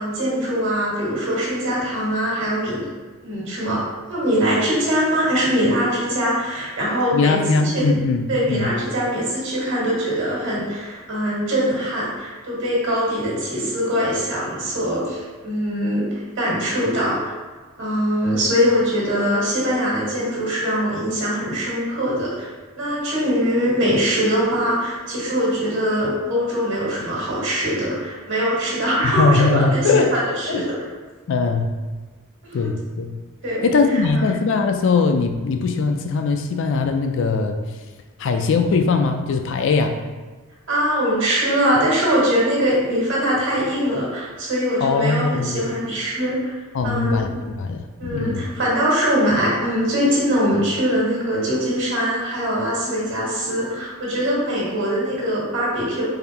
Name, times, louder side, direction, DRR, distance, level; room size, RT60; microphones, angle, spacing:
voice 1, 0.0-2.9 3.2-3.8 4.1-7.4 7.6-7.9 8.3-17.3 17.8-22.5 22.7-30.8 32.4-32.7 33.4-34.0 40.7-46.5 46.8-47.3 48.0-56.0, equal, 60° right, -5 dB, 1.4 m, -22 dB
voice 2, 7.1-8.7 29.0-30.1 30.5-30.6 31.3-31.7 32.5-33.2 33.6-37.6 38.2-40.0 44.8-45.6 46.7-48.4, left 4 dB, 55° left, 5 dB, 0.3 m, -20 dB
3.9 x 3.4 x 2.8 m, 1.3 s
head